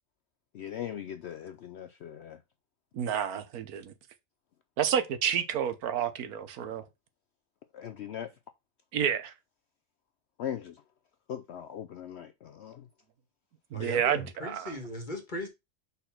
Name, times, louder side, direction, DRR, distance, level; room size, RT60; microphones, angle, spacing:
voice 1, 0.5-2.4 7.7-8.3 10.4-10.8 11.3-12.9, left 9 dB, 65° left, 0.7 m, -39 dB
voice 2, 2.9-3.9 4.8-6.8 8.9-9.3 13.7-14.7, right 9 dB, 85° right, 1.4 m, -30 dB
voice 3, 13.7-15.5, left 1 dB, 35° left, 1.7 m, -38 dB
5.4 x 4.2 x 5.8 m
omnidirectional pair, 1.5 m